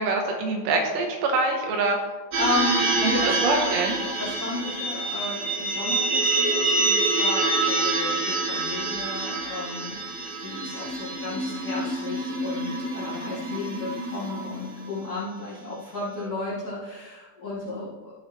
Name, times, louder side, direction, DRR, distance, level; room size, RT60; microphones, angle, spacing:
voice 1, 0.0-2.0 3.0-3.9, right 3 dB, 85° right, 3 dB, 3.2 m, -25 dB
voice 2, 2.3-3.8 4.2-18.1, left 2 dB, 25° left, -12 dB, 3.1 m, -33 dB
sound 1, 2.3-14.9, right 2 dB, 55° right, 1.7 m, -27 dB
14.0 x 6.2 x 3.1 m, 1.3 s
omnidirectional pair, 4.9 m